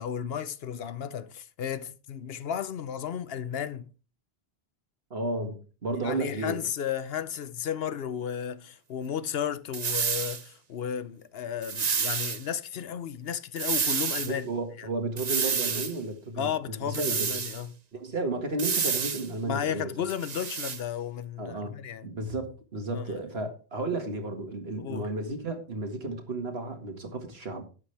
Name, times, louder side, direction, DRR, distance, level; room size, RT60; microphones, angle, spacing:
voice 1, 0.0-3.9 5.9-14.5 14.8-14.9 16.4-17.8 19.4-22.1 22.9-23.2 24.8-25.1, left 8 dB, 70° left, 0.9 m, -34 dB
voice 2, 5.1-6.6 14.3-17.4 17.9-19.9 21.4-21.7 22.0-27.7, right 2 dB, 70° right, 2.1 m, -33 dB
sound 1, 9.7-10.4 11.6-12.4 13.6-14.3 15.2-15.9 16.9-17.6 18.6-19.3 20.1-20.8, right 6 dB, 45° right, 0.8 m, -29 dB
12.0 x 8.8 x 3.4 m
omnidirectional pair, 1.1 m